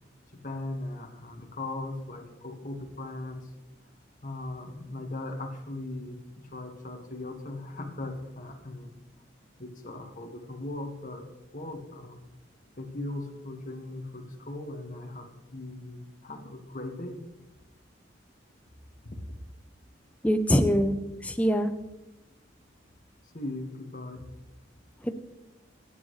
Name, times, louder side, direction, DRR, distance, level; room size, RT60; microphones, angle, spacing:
voice 1, 0.3-3.5 4.2-9.0 9.6-12.2 12.8-17.3 19.0-19.4 23.3-24.3, left 2 dB, 40° left, 3 dB, 1.8 m, -39 dB
voice 2, 20.2-21.7 25.0-25.1, equal, 5° left, 7 dB, 0.8 m, -24 dB
24.0 x 9.9 x 3.3 m, 0.99 s
head